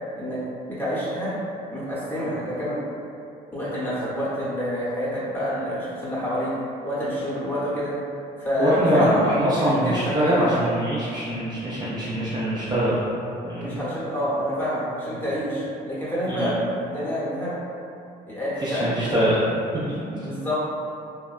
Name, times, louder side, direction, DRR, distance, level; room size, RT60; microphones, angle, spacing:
voice 1, 0.2-1.3 1.7-2.8 3.5-6.5 6.8-7.9 8.4-9.3 9.6-10.5 13.6-17.5 18.3-19.0 20.2-20.6, equal, 10° left, -10 dB, 0.9 m, -27 dB
voice 2, 8.6-13.0 13.4-13.7 16.3-16.5 18.6-19.4 19.9-20.3, equal, 25° right, -10 dB, 0.5 m, -23 dB
2.7 x 2.1 x 2.4 m, 2.7 s
cardioid pair, 110°, 17 cm